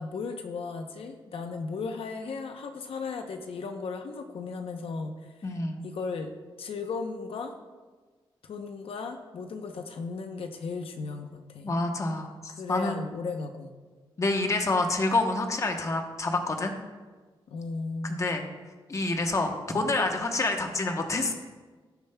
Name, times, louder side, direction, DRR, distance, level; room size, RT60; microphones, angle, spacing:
voice 1, 0.0-5.6 5.8-6.3 6.6-7.5 8.4-11.8 12.5-13.7 17.5-18.2, left 4 dB, 75° left, 5 dB, 0.8 m, -36 dB
voice 2, 5.4-5.8 11.6-12.9 14.2-16.7 18.0-18.4 18.9-21.3, left 2 dB, 35° left, 4 dB, 0.9 m, -27 dB
18.5 x 7.0 x 2.3 m, 1.3 s
wide cardioid pair, 135°, 10 cm